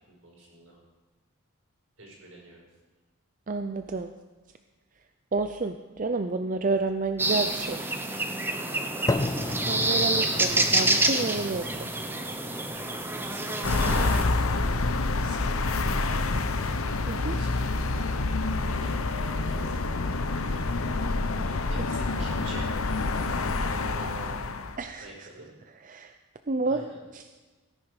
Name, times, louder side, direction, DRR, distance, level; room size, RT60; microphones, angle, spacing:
voice 1, 0.1-0.8 2.0-2.6 12.7-14.3 14.6-16.3 17.4-17.7 18.7-19.8 20.1-21.0 21.7-24.5 25.0-25.5 26.7-27.0, right 1 dB, 75° right, -2 dB, 5.5 m, -46 dB
voice 2, 3.5-4.1 5.3-7.9 9.5-11.9 17.1-17.4 21.8-21.9 24.8-25.3 25.8-26.1 26.5-26.8 27.1-27.2, right 3 dB, 40° right, 8 dB, 0.5 m, -30 dB
sound 1, 7.2-14.2, right 2 dB, 10° right, 0.8 m, -27 dB
sound 2, 9.1-17.1, left 2 dB, 15° left, 0.4 m, -36 dB
sound 3, 13.6-24.8, left 3 dB, 75° left, 0.9 m, -27 dB
17.0 x 11.0 x 4.9 m, 1.2 s
head